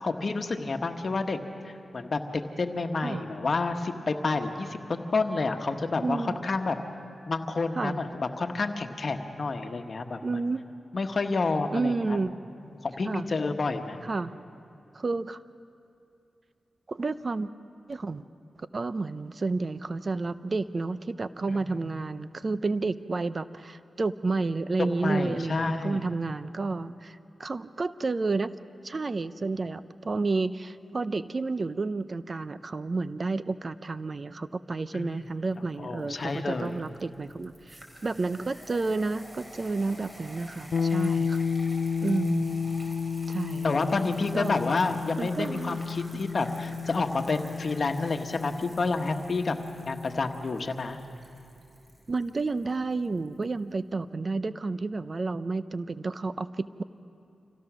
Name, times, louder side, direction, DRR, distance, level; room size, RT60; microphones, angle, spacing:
voice 1, 0.0-1.4 1.6-6.8 7.3-10.4 10.9-12.2 12.6-14.0 21.5-22.0 24.8-26.0 34.9-35.2 35.8-36.8 43.6-49.6 49.9-51.0, left 3 dB, 60° left, 6 dB, 1.3 m, -29 dB
voice 2, 6.0-6.4 7.8-8.0 10.2-10.7 11.7-12.3 13.1-13.3 14.0-14.3 14.9-15.4 16.9-17.5 17.9-18.2 18.7-28.5 28.8-41.5 42.0-42.6 43.3-43.8 44.3-44.6 45.2-45.8 52.1-56.8, right 3 dB, 50° right, 14 dB, 0.6 m, -30 dB
sound 1, 35.5-53.5, equal, 20° right, 4.4 m, -50 dB
sound 2, 40.7-50.5, left 6 dB, 75° left, 0.5 m, -32 dB
26.0 x 16.0 x 6.2 m, 2.7 s
cardioid pair, 50°, 0 cm